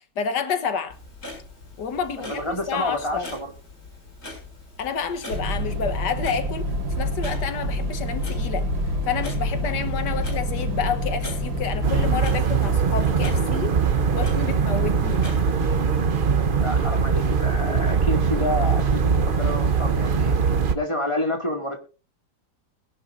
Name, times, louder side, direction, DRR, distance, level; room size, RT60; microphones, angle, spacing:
voice 1, 0.2-1.0 1.8-3.3 4.8-8.7 9.1-13.7 14.1-15.3, left 6 dB, 90° left, 1.9 m, -29 dB
Clock, 0.9-16.0, left 2 dB, 60° left, 7.7 m, -43 dB
voice 2, 2.2-3.5 16.6-20.4 20.7-21.8, left 1 dB, 15° left, 2.3 m, -28 dB
sound 1, 5.3-12.2, equal, 75° right, 2.3 m, -27 dB
sound 2, 11.8-20.7, right 6 dB, 40° right, 0.9 m, -21 dB
21.0 x 11.0 x 2.6 m
omnidirectional pair, 1.8 m